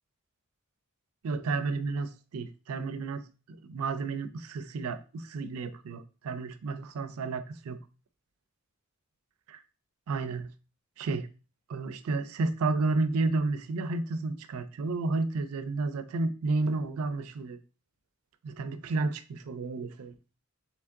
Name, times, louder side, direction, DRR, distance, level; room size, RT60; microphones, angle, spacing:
voice 1, 1.2-7.8 9.5-9.6 10.1-10.5 11.0-11.3 11.7-17.6 18.4-20.1, right 3 dB, 85° right, 0.4 m, -31 dB
3.6 x 3.1 x 3.5 m
head